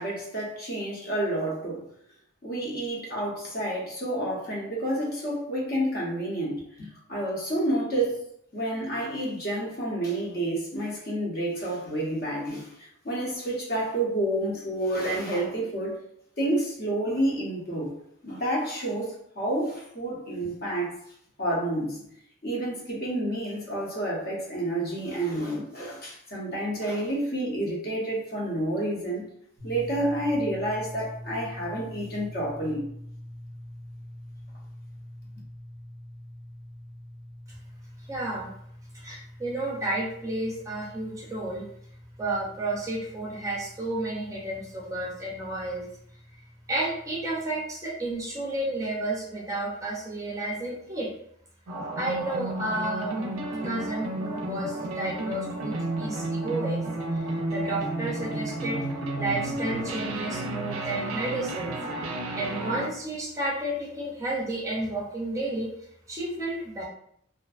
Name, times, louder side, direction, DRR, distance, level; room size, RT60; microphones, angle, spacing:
voice 1, 0.0-1.8 2.4-8.2 8.5-16.0 16.4-17.9 18.2-20.9 21.4-22.0 22.4-29.2 29.6-32.9, right 1 dB, 45° left, -3 dB, 0.7 m, -29 dB
sound 1, 29.6-47.4, left 1 dB, 85° left, 1.3 m, -45 dB
voice 2, 38.1-38.5 38.9-41.6 42.2-45.8 46.7-51.1 52.0-53.4 53.6-56.8 57.1-58.8 59.2-61.7 62.4-65.7 66.1-66.9, right 2 dB, 15° right, -5 dB, 0.5 m, -31 dB
sound 2, 51.7-62.9, right 2 dB, 80° right, 0.4 m, -32 dB
2.5 x 2.1 x 2.3 m, 0.69 s
head